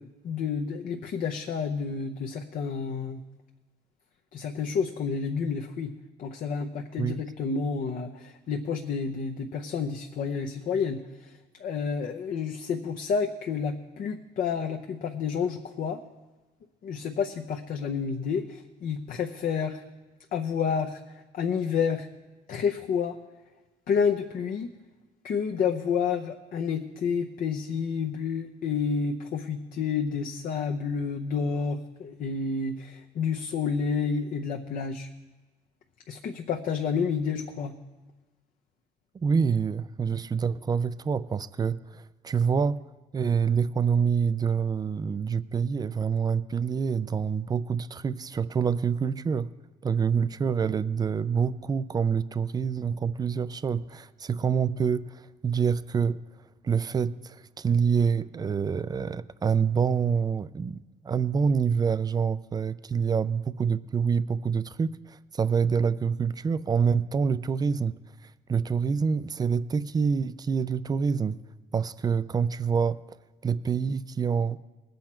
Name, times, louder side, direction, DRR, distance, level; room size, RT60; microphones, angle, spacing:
voice 1, 0.0-3.2 4.3-5.9 6.2-11.3 11.6-16.0 16.8-19.8 20.3-22.1 22.5-23.2 23.9-24.7 25.2-35.1 36.1-37.7, left 6 dB, 55° left, 0.8 m, -30 dB
voice 2, 39.1-42.8 43.1-49.5 49.8-55.1 55.4-56.2 56.6-68.0 68.5-71.4 71.7-73.0 73.4-74.6, right 6 dB, 25° right, 0.4 m, -26 dB
20.0 x 7.9 x 4.4 m
cardioid pair, 110°, 17 cm